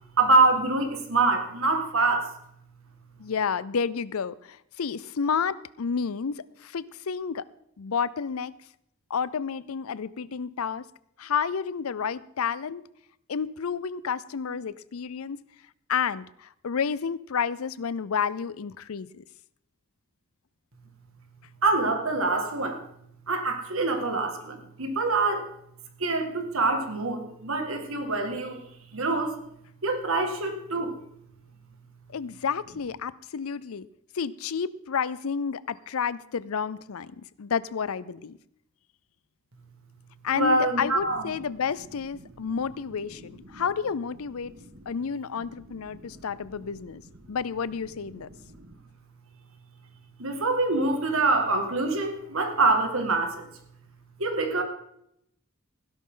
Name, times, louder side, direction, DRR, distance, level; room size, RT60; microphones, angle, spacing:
voice 1, 0.2-2.3 21.6-22.8 23.3-25.5 26.0-28.6 28.9-29.4 29.8-31.0 40.3-41.2 43.5-43.6 44.8-44.9 46.0-46.1 48.6-48.7 50.2-53.5 54.2-54.6, right 3 dB, 70° right, 5 dB, 2.1 m, -25 dB
voice 2, 3.2-7.4 7.8-8.5 9.1-10.8 11.2-12.8 13.3-15.4 15.9-19.2 32.1-33.9 34.1-38.4 40.2-44.5 44.9-47.0 47.3-48.3, left 6 dB, 80° left, 18 dB, 0.5 m, -30 dB
16.5 x 11.5 x 3.9 m, 0.75 s
head